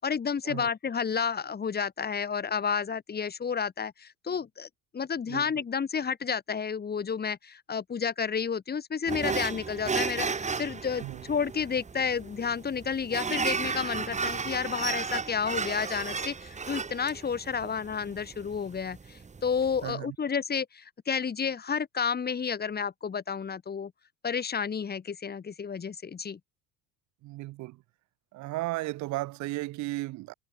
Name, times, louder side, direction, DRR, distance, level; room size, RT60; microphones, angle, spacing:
voice 1, 0.0-23.9 24.2-26.4, left 6 dB, 30° left, 7.6 m, -31 dB
sound 1, 9.1-19.9, right 5 dB, 25° right, 3.9 m, -34 dB
voice 2, 19.8-20.2 27.2-27.8 28.3-30.3, right 19 dB, 65° right, 3.8 m, -35 dB
supercardioid pair, 95°, 31 cm